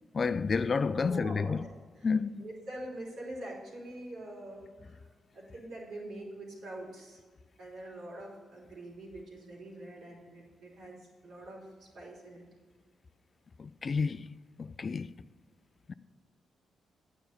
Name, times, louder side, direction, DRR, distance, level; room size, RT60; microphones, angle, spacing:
voice 1, 0.1-1.6 2.0-2.4 13.6-14.3 14.6-15.2 15.9-16.0, left 5 dB, 50° left, 0.4 m, -30 dB
voice 2, 0.9-2.1 2.4-5.0 5.3-7.2 7.6-12.5, right 1 dB, 75° right, 3.4 m, -45 dB
9.6 x 5.7 x 7.0 m
supercardioid pair, 50°, 0 cm